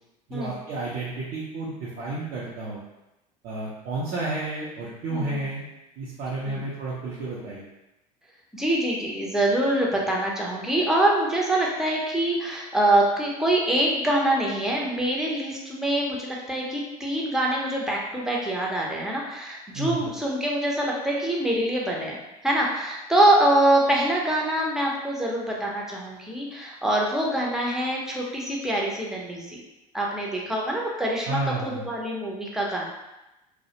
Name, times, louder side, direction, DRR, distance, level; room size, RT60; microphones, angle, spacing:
voice 1, 0.3-2.8 3.4-5.6 6.0-7.6 19.7-20.1 31.3-31.9, right 2 dB, 45° right, -7 dB, 0.6 m, -31 dB
voice 2, 5.1-5.4 6.5-6.6 8.5-22.1 22.4-29.6 29.9-32.9, right 1 dB, ahead, -3 dB, 0.6 m, -25 dB
2.3 x 2.1 x 2.8 m, 0.95 s
hypercardioid pair, 75°, 20 cm